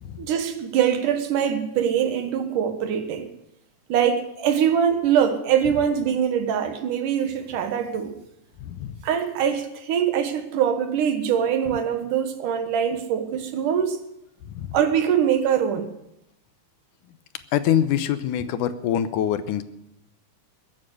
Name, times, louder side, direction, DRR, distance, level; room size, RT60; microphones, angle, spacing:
voice 1, 0.2-3.3 3.9-8.2 9.0-14.0 14.7-15.9, right 8 dB, 80° right, 2.9 m, -23 dB
voice 2, 8.6-8.9 14.5-14.8 17.5-19.6, left 10 dB, 85° left, 2.4 m, -24 dB
22.0 x 9.1 x 6.3 m
omnidirectional pair, 3.6 m